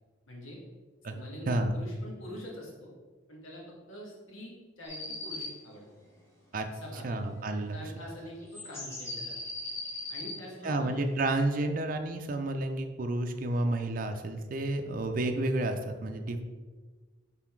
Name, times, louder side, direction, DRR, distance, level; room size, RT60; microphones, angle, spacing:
voice 1, 0.3-0.6 1.1-2.9 3.3-5.9 6.7-7.2 7.7-9.4 10.1-11.0, equal, 85° left, -3 dB, 1.8 m, -45 dB
sound 1, 4.8-5.5 8.5-10.4, left 2 dB, 15° left, 1.2 m, -38 dB
voice 2, 7.0-7.8 10.6-16.4, right 2 dB, 45° right, 6 dB, 0.5 m, -30 dB
5.8 x 4.1 x 4.5 m, 1.4 s
head